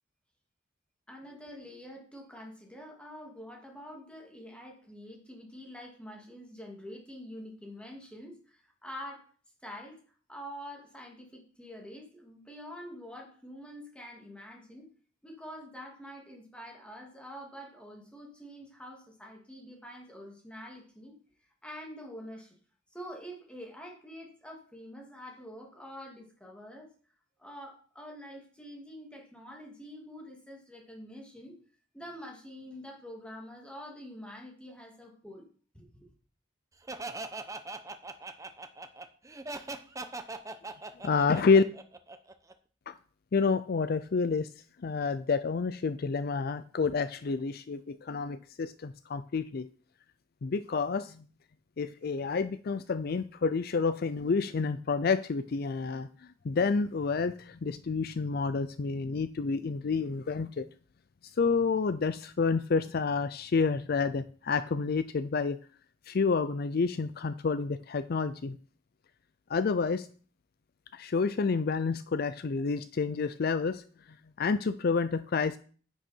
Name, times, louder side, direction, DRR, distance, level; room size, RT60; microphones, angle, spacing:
voice 1, 1.1-9.3 9.6-10.0 10.3-14.9 15.2-21.2 21.6-22.5 22.9-26.9 27.4-31.6 31.9-35.5 35.7-36.1, equal, 5° left, 0 dB, 2.6 m, -46 dB
Laughter, 36.9-42.5, right 3 dB, 15° right, 0.8 m, -40 dB
voice 2, 41.0-41.6 42.9-43.0 43.3-44.5 44.8-49.7 50.4-51.3 51.8-60.7 61.4-65.6 66.1-68.6 69.5-70.1 70.9-73.8 74.4-75.6, left 4 dB, 50° left, 13 dB, 0.4 m, -29 dB
10.0 x 9.0 x 4.5 m, 0.43 s
head